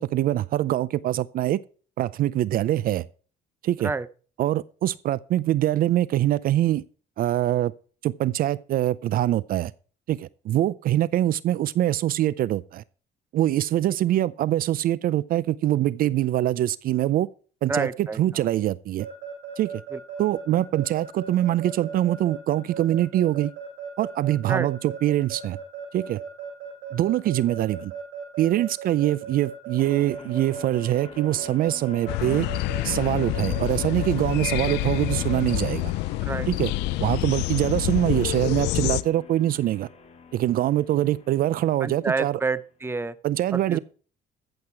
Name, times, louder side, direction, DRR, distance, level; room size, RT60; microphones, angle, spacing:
voice 1, 0.0-1.6 2.0-3.1 3.6-3.9 4.4-6.8 7.2-7.7 8.0-9.7 10.1-12.8 13.3-17.3 17.6-19.1 19.6-19.8 20.2-23.5 24.0-25.6 25.9-26.2 26.9-27.9 28.4-32.5 32.8-35.9 36.5-36.7 37.0-39.9 40.3-42.4 43.2-43.8, right 13 dB, 60° right, 0.5 m, -24 dB
voice 2, 17.7-18.5 19.9-20.0 24.5-24.7 36.2-36.5 41.8-43.2 43.5-43.8, right 4 dB, 15° right, 0.7 m, -28 dB
Keyboard (musical) / Alarm, 19.0-35.6, right 8 dB, 85° right, 7.0 m, -37 dB
sound 1, 29.8-42.8, left 6 dB, 40° left, 2.9 m, -46 dB
sound 2, 32.1-39.0, left 17 dB, 90° left, 0.6 m, -27 dB
14.5 x 7.9 x 4.5 m
cardioid pair, 110°, 17 cm